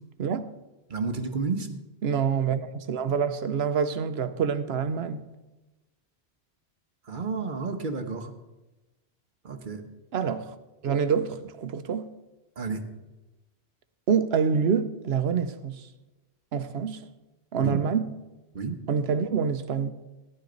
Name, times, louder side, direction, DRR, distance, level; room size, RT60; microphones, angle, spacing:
voice 1, 0.9-1.7 7.1-8.3 9.4-9.8 12.6-12.8 17.5-17.8 18.5-18.8, right 4 dB, 50° right, 1.2 m, -31 dB
voice 2, 2.0-5.2 10.1-10.5 10.8-12.1 14.1-15.9 16.5-17.0 17.5-18.1 18.9-19.9, right 6 dB, 75° right, 1.0 m, -26 dB
15.0 x 11.0 x 3.9 m
omnidirectional pair, 1.1 m